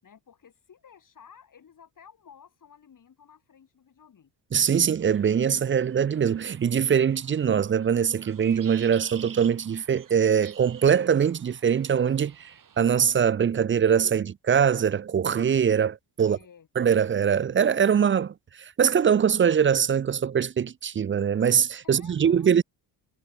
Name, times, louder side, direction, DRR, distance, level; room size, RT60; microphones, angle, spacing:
voice 1, 0.0-4.3 16.2-16.7 21.8-22.6, left 7 dB, 45° left, 7.1 m, -54 dB
voice 2, 4.5-16.4 16.8-22.6, right 7 dB, 30° right, 0.5 m, -23 dB
sound 1, 5.0-12.8, right 8 dB, 45° right, 4.1 m, -49 dB
cardioid pair, 115°, 44 cm